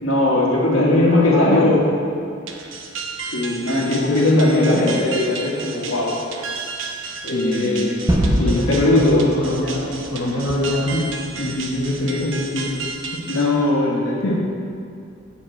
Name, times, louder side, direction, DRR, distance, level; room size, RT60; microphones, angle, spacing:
voice 1, 0.0-1.9 3.3-6.2 7.2-9.3 13.3-14.4, left 2 dB, 85° left, -3 dB, 1.7 m, -20 dB
voice 2, 0.7-1.7 3.8-5.0 7.3-7.9 8.4-12.8 14.2-14.4, left 1 dB, 65° left, -7 dB, 1.2 m, -22 dB
sound 1, 2.5-13.5, right 4 dB, 70° right, 0.8 m, -33 dB
Gunshot gunfire / Fireworks / Boom, 8.1-12.9, equal, 15° right, 0.9 m, -26 dB
8.5 x 7.4 x 4.5 m, 2.4 s
head